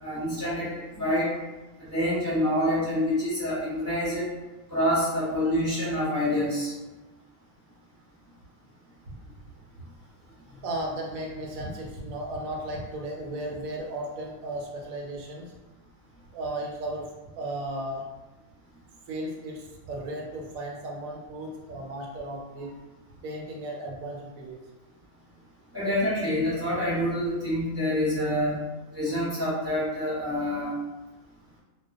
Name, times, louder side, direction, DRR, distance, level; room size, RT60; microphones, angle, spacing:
voice 1, 0.0-1.3 1.9-4.2 4.7-6.7 25.7-28.6 28.9-30.7, left 1 dB, 10° right, -10 dB, 0.9 m, -27 dB
voice 2, 10.6-15.5 16.3-17.1 17.4-18.0 19.1-22.7 23.2-24.6, right 1 dB, 80° right, -1 dB, 1.0 m, -35 dB
2.2 x 2.2 x 2.5 m, 1.1 s
omnidirectional pair, 1.4 m